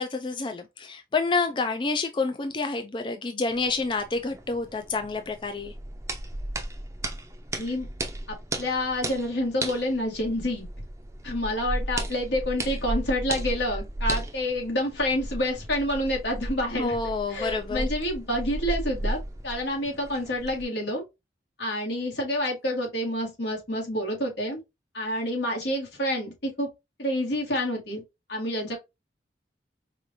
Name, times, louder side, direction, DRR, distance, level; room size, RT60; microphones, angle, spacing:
voice 1, 0.0-5.7 16.8-17.9, left 3 dB, 30° left, 0.4 m, -28 dB
sound 1, 3.5-20.6, right 1 dB, 15° right, 0.6 m, -35 dB
voice 2, 7.6-7.9 8.3-10.7 11.2-17.0 17.3-21.0 21.6-24.6 24.9-26.7 27.0-28.0 28.3-28.8, left 1 dB, 85° left, 1.9 m, -28 dB
4.9 x 2.5 x 2.6 m
head